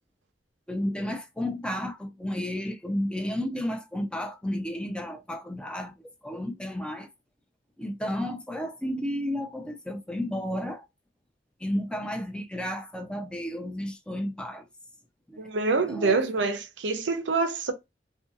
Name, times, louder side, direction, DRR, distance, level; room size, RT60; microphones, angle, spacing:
voice 1, 0.7-5.9 6.2-7.1 7.8-10.9 11.6-14.6 15.3-15.5 15.9-16.2, left 1 dB, 5° left, 0.3 m, -32 dB
voice 2, 15.4-17.7, right 3 dB, 85° right, 0.6 m, -26 dB
2.7 x 2.6 x 2.5 m
head